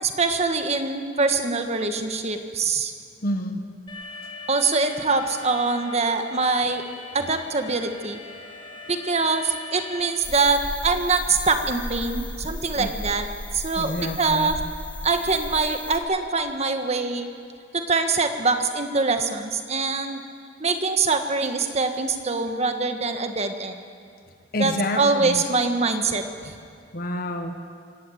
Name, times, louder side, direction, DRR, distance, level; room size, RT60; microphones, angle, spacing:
voice 1, 0.0-2.9 4.5-6.8 7.1-8.2 8.9-13.2 13.5-14.6 15.0-17.3 17.7-20.2 20.6-23.8 24.6-26.5, right 4 dB, 35° right, 6 dB, 1.5 m, -24 dB
voice 2, 3.2-3.6 12.8-13.0 13.8-14.6 20.0-20.2 24.5-25.4 26.9-27.5, left 1 dB, 50° left, 5 dB, 1.3 m, -28 dB
Alarm, 3.9-10.1, left 2 dB, 25° left, 3.8 m, -41 dB
sound 1, 10.2-16.0, left 1 dB, 10° left, 1.6 m, -35 dB
25.5 x 14.5 x 8.5 m, 2.3 s
head